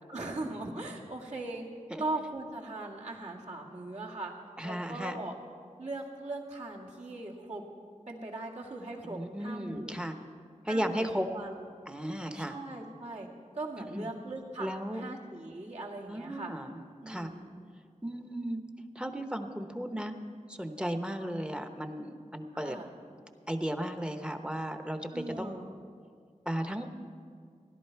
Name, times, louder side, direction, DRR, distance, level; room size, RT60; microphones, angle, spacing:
voice 1, 0.1-1.6 2.0-4.3 4.6-5.3 5.8-7.6 8.1-10.0 10.7-11.1 11.3-11.7 12.3-13.3 13.5-16.5 17.0-17.4 22.5-22.9 25.1-25.7, right 2 dB, 60° right, -3 dB, 1.9 m, -39 dB
voice 2, 4.6-5.2 9.1-10.2 10.6-11.3 11.9-12.6 13.9-14.1 14.6-15.0 16.1-16.7 17.1-17.3 18.0-18.6 18.9-20.2 20.5-22.8 23.5-25.6 26.5-26.9, equal, 5° right, 7 dB, 0.9 m, -35 dB
16.5 x 11.0 x 4.5 m, 2.2 s
wide cardioid pair, 45°, 13 cm